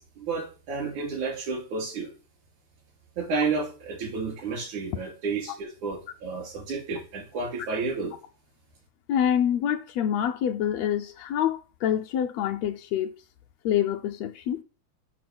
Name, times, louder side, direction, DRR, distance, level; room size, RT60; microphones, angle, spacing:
voice 1, 0.0-2.1 3.2-8.2, right 4 dB, 85° right, 4.3 m, -31 dB
voice 2, 9.1-13.1 13.6-14.6, left 9 dB, 80° left, 1.5 m, -26 dB
7.0 x 6.2 x 6.0 m
omnidirectional pair, 3.3 m